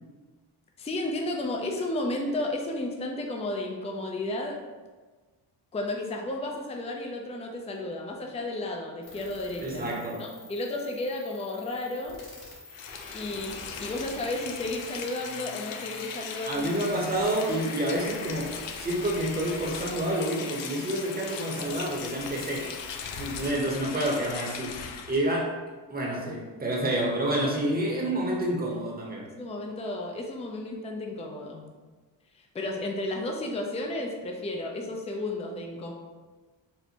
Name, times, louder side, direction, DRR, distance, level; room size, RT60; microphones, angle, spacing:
voice 1, 0.8-4.6 5.7-9.8 10.2-12.2 13.1-16.7 23.4-23.5 29.2-31.6 32.5-35.9, left 1 dB, 15° left, 1 dB, 0.4 m, -33 dB
sound 1, 9.0-23.5, left 2 dB, 50° left, 1.2 m, -47 dB
voice 2, 9.6-10.3 16.4-22.7 23.2-25.6 25.9-29.3, right 1 dB, 20° right, -2 dB, 0.8 m, -29 dB
Rain, 12.7-25.3, left 6 dB, 65° left, 0.5 m, -39 dB
4.3 x 2.1 x 2.8 m, 1.3 s
cardioid pair, 65°, 47 cm